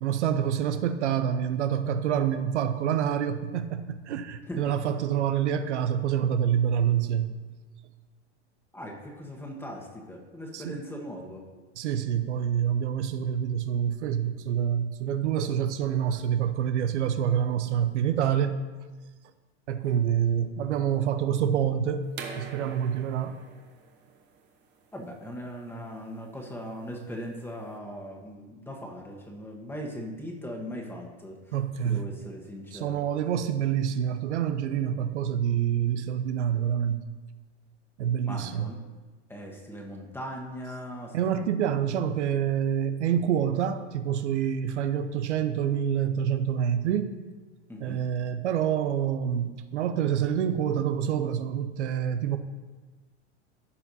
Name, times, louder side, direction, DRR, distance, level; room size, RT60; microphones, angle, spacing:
voice 1, 0.0-7.4 10.5-10.8 11.7-18.6 19.7-22.1 22.4-23.4 31.5-32.1 32.7-37.1 38.0-38.8 41.1-47.2 47.8-52.4, right 9 dB, 80° right, 9 dB, 0.7 m, -27 dB
voice 2, 8.7-11.4 24.9-31.4 31.8-33.0 38.2-38.8 39.3-41.4 47.7-48.0, equal, 5° left, 0 dB, 1.4 m, -39 dB
sound 1, 22.1-27.7, right 5 dB, 30° right, 1.1 m, -46 dB
15.0 x 5.7 x 2.8 m, 1.3 s
hypercardioid pair, 115°, 34 cm